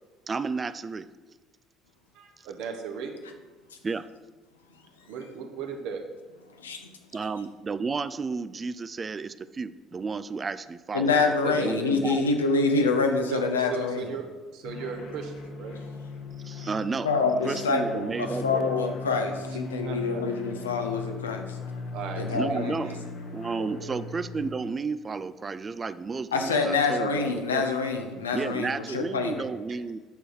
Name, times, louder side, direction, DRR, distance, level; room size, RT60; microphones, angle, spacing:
voice 1, 0.3-1.1 3.8-4.1 7.1-11.2 11.5-12.2 16.4-17.1 17.4-18.8 22.3-23.0 23.3-27.7 28.3-30.0, right 4 dB, 30° right, 15 dB, 0.4 m, -32 dB
voice 2, 2.1-3.1 5.1-6.0 11.4-12.1 13.3-13.4 13.7-14.2 14.5-15.8 19.8-20.2 21.9-24.0, right 6 dB, 60° right, 4 dB, 1.1 m, -37 dB
voice 3, 6.6-6.9 10.9-14.2 17.0-21.6 22.2-22.7 26.3-29.5, left 4 dB, 85° left, 5 dB, 0.7 m, -26 dB
sound 1, 14.6-24.5, left 3 dB, 60° left, 1.2 m, -38 dB
8.8 x 6.3 x 4.6 m, 1.3 s
figure-of-eight pair, 55°, 0 cm